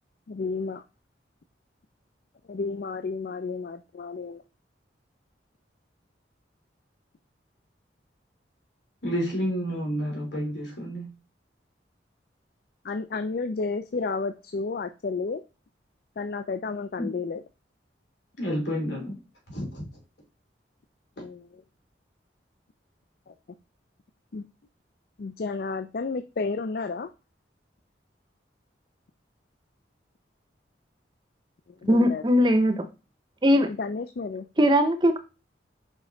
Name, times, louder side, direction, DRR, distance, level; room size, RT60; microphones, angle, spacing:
voice 1, 0.3-0.8 2.5-4.4 12.8-15.4 16.2-17.4 21.2-21.6 23.3-23.4 24.3-24.4 25.2-27.1 31.8-32.2 33.7-34.5, left 4 dB, 55° left, 0.4 m, -32 dB
voice 2, 9.0-11.1 17.0-17.1 18.4-19.2 19.5-19.9, equal, 75° left, 3.2 m, -30 dB
voice 3, 31.9-32.8 33.4-33.7 34.6-35.2, equal, 25° right, 0.6 m, -20 dB
5.2 x 4.8 x 3.9 m
head